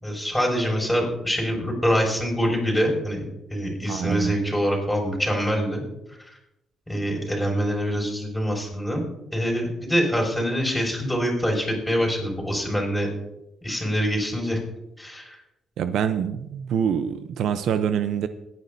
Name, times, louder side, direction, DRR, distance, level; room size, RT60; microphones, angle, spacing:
voice 1, 0.0-3.3 3.5-5.8 6.9-9.0 9.3-13.1 13.6-14.6 15.0-15.4, equal, 5° left, -1 dB, 5.9 m, -25 dB
voice 2, 3.9-4.3 15.8-18.3, right 8 dB, 75° right, 11 dB, 0.6 m, -25 dB
21.5 x 10.5 x 2.7 m, 0.87 s
cardioid pair, 90°, 0 cm